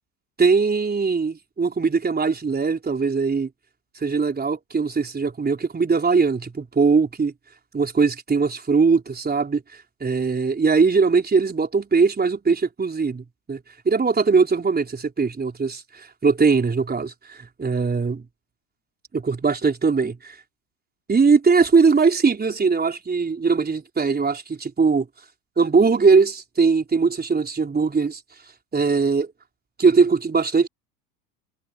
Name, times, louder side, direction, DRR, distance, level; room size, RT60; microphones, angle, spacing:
voice 1, 0.4-3.5 4.0-7.3 7.7-9.6 10.0-13.6 13.8-18.2 19.1-20.3 21.1-25.1 25.6-28.2 28.7-29.3 29.8-30.7, right 4 dB, 20° right, 4.4 m, -20 dB
figure-of-eight pair, 70°, 50 cm